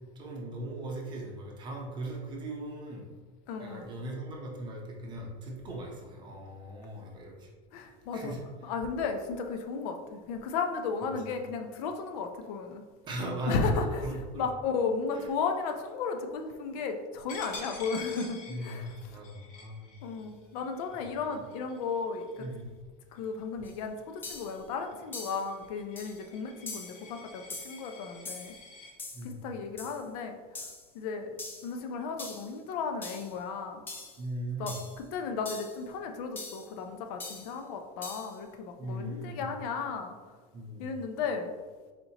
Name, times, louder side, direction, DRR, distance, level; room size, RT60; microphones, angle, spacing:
voice 1, 0.2-3.1 3.6-7.5 8.1-8.4 11.2-11.3 13.0-14.5 15.1-15.3 18.5-19.9 20.9-21.0 22.4-22.7 29.1-29.4 34.2-34.8 38.8-39.5 40.5-40.9, right 1 dB, 20° right, -1 dB, 0.7 m, -39 dB
voice 2, 3.5-3.8 7.7-8.4 8.6-12.8 13.5-18.9 20.0-22.5 23.1-28.5 29.2-30.4 30.9-31.3 31.6-33.8 34.6-40.1 40.8-41.5, left 5 dB, 65° left, 5 dB, 0.5 m, -34 dB
Coin (dropping), 17.3-22.7 23.2-23.4 23.8-28.9, left 3 dB, 40° left, 1.0 m, -48 dB
sound 1, 23.6-23.7 24.2-24.6 25.1-25.5 26.0-26.2 26.7-27.0 27.5-27.8 28.3-28.6 29.0-29.3 29.8-30.0 30.6-30.9 31.4-31.7 32.2-32.5 33.0-33.3 33.9-34.2 34.7-35.0 35.5-35.8 36.4-36.7 37.2-37.5 38.0-38.4, left 3 dB, 10° left, 0.3 m, -42 dB
4.2 x 4.2 x 2.8 m, 1.4 s
supercardioid pair, 165°, 21 cm